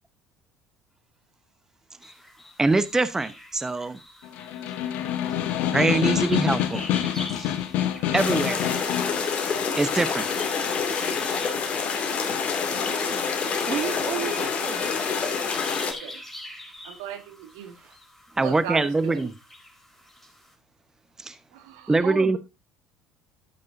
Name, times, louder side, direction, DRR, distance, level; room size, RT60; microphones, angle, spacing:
sound 1, 2.0-20.5, left 1 dB, 5° left, 4.3 m, -45 dB
voice 1, 2.6-4.0 5.7-6.8 7.4-7.6 8.1-8.7 9.8-10.3 18.4-19.3 21.2-21.4 21.9-22.4, right 3 dB, 15° right, 0.9 m, -23 dB
Snare drum, 4.2-9.2, left 11 dB, 65° left, 1.3 m, -26 dB
sound 2, 8.2-15.9, left 5 dB, 45° left, 2.3 m, -27 dB
voice 2, 12.7-14.8 16.0-16.1 17.6-18.0 22.0-22.4, right 9 dB, 45° right, 0.9 m, -34 dB
voice 3, 16.8-17.7 18.4-19.2 21.5-22.0, right 10 dB, 75° right, 1.8 m, -38 dB
12.0 x 8.7 x 2.6 m
hypercardioid pair, 65°, 3 cm